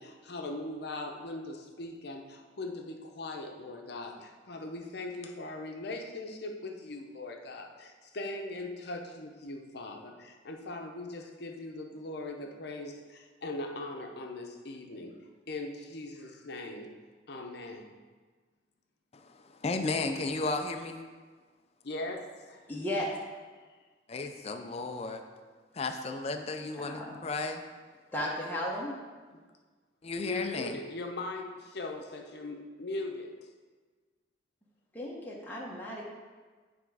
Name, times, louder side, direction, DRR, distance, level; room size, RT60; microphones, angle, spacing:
voice 1, 0.0-15.2 15.5-17.0 17.3-17.9 21.8-22.6 29.3-29.4 30.2-33.4, left 2 dB, 60° left, 3 dB, 0.8 m, -40 dB
voice 2, 19.1-21.1 24.1-25.2 25.7-27.6 30.0-30.8, left 3 dB, 35° left, 6 dB, 0.4 m, -34 dB
voice 3, 22.7-23.1 26.8-27.2 28.1-29.0 34.9-36.0, left 1 dB, 10° left, -4 dB, 0.9 m, -35 dB
9.2 x 3.5 x 4.8 m, 1.4 s
head